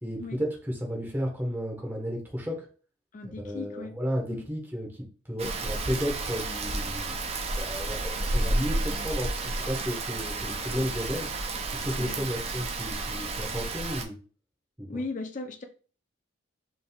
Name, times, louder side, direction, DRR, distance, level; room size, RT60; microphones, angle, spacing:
voice 1, 0.0-0.5 0.8-2.6 3.4-4.9 5.3-7.1 7.5-11.3 11.7-14.2 14.8-15.0, equal, 10° right, -2 dB, 1.2 m, -33 dB
voice 2, 3.1-3.9 4.3-4.4 12.0-12.3 14.9-15.6, left 3 dB, 40° left, 4 dB, 0.5 m, -37 dB
Rain, 5.4-14.0, right 2 dB, 30° right, 0.5 m, -31 dB
5.1 x 3.5 x 2.3 m, 0.38 s
head